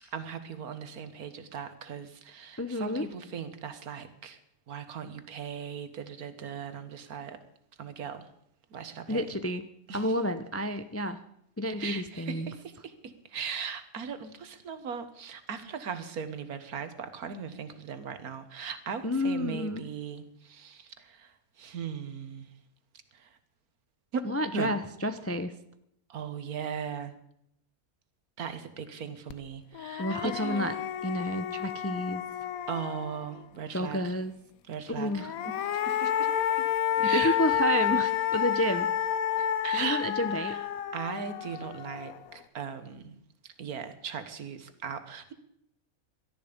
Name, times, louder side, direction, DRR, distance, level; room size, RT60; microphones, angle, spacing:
voice 1, 0.1-4.4 4.7-7.4 7.8-8.3 8.7-9.3 9.9-10.2 11.8-22.5 23.1-23.4 24.1-24.3 24.5-24.8 26.1-27.1 28.4-30.7 32.7-34.1 34.7-36.3 37.0-37.4 39.4-40.0 40.3-40.7 40.9-43.2 43.4-45.3, right 6 dB, 80° right, 10 dB, 1.8 m, -38 dB
voice 2, 2.6-3.0 9.1-9.6 9.9-11.2 11.6-12.5 19.0-19.8 24.3-25.5 30.0-30.7 31.0-32.2 33.7-34.3 35.0-35.3 37.0-38.9 39.7-40.6, left 1 dB, 20° left, 10 dB, 0.4 m, -30 dB
sound 1, 29.3-29.4 29.7-33.4 35.1-42.3, left 9 dB, 75° left, 1.2 m, -30 dB
17.5 x 12.5 x 5.2 m, 0.75 s
omnidirectional pair, 1.5 m